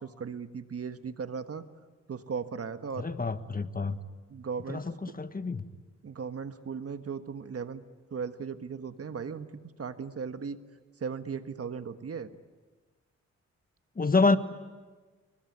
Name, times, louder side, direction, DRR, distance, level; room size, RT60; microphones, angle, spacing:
voice 1, 0.0-1.6 2.1-3.1 4.3-4.9 6.0-7.8 8.1-9.5 9.8-10.6 11.0-12.3, right 6 dB, 55° right, 9 dB, 1.5 m, -37 dB
voice 2, 2.9-4.0 4.7-5.6 13.9-14.4, left 3 dB, 30° left, 10 dB, 1.4 m, -27 dB
28.0 x 22.0 x 9.6 m, 1.4 s
cardioid pair, 80°, 29 cm